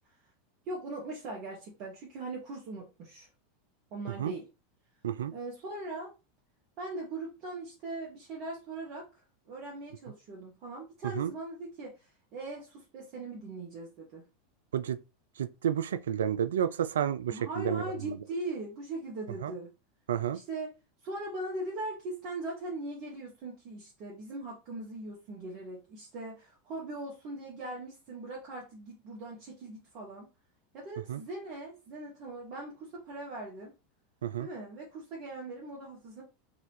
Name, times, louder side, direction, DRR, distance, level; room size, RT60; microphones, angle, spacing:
voice 1, 0.7-3.3 3.9-4.4 5.3-6.1 6.8-14.2 17.3-19.7 20.3-20.7 21.0-30.3 30.7-33.7 34.4-36.2, right 2 dB, 50° right, 1.3 m, -40 dB
voice 2, 15.4-18.2 19.4-19.5 20.1-20.4 31.1-31.2 34.2-34.5, right 9 dB, 75° right, 0.3 m, -31 dB
4.0 x 2.5 x 3.0 m
figure-of-eight pair, 85°, 0 cm